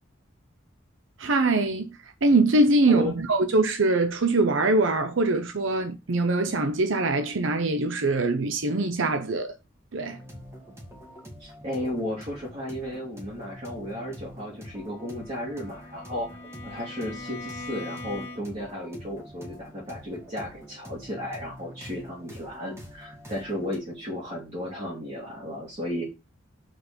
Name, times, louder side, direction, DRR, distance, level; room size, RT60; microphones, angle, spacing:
voice 1, 1.2-1.9 2.2-9.5 9.9-10.2, right 2 dB, 75° right, 0.7 m, -23 dB
voice 2, 2.9-3.2 11.4-16.3 16.6-26.0, left 1 dB, 35° right, 2.3 m, -34 dB
sound 1, 10.0-23.8, equal, 15° right, 2.0 m, -45 dB
Bowed string instrument, 14.9-18.7, left 3 dB, 30° left, 1.9 m, -42 dB
6.4 x 4.3 x 5.0 m
head